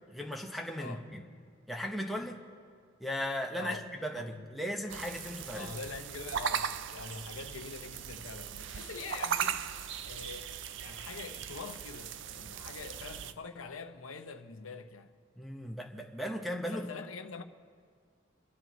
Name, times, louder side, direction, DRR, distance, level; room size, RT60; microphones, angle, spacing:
voice 1, 0.1-1.2 1.7-2.4 3.0-5.7 15.4-16.9, equal, ahead, 1.0 m, -37 dB
voice 2, 4.1-4.5 5.5-9.6 10.0-15.1 16.7-17.4, left 4 dB, 90° left, 0.8 m, -44 dB
sound 1, 4.9-13.3, right 8 dB, 60° right, 0.5 m, -38 dB
28.5 x 12.0 x 3.1 m
head